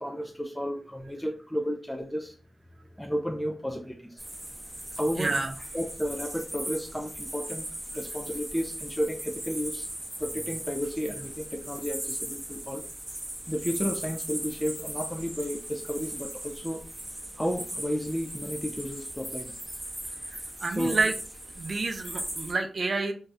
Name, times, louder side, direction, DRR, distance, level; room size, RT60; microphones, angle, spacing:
voice 1, 0.0-2.4 2.9-4.2 5.0-5.4 5.7-7.7 7.9-9.9 10.2-12.8 13.5-16.8 17.4-19.5 20.8-21.0, equal, 5° left, 3 dB, 0.4 m, -32 dB
sound 1, 4.2-22.5, right 1 dB, 15° right, 0.8 m, -38 dB
voice 2, 5.2-5.5 20.3-21.1 21.6-23.1, right 3 dB, 55° right, 5 dB, 0.4 m, -29 dB
2.6 x 2.3 x 3.2 m, 0.41 s
cardioid pair, 70°, 0 cm